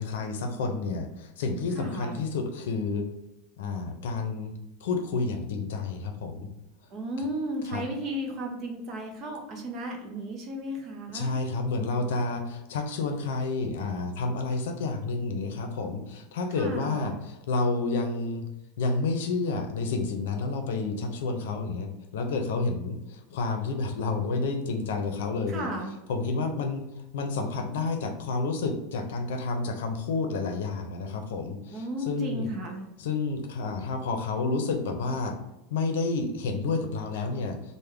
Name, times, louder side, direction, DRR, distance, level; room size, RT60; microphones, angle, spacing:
voice 1, 0.0-3.1 3.6-4.5 4.8-6.5 7.7-7.8 11.1-18.4 18.8-25.7 26.1-26.9 27.1-32.5 33.0-35.4 35.7-37.6, left 3 dB, 90° left, 5 dB, 0.6 m, -30 dB
voice 2, 1.7-2.2 6.9-11.3 16.6-17.1 25.5-25.9 31.7-32.9, equal, 25° right, 2 dB, 0.5 m, -34 dB
3.3 x 2.1 x 3.5 m, 0.90 s
supercardioid pair, 175°, 0 cm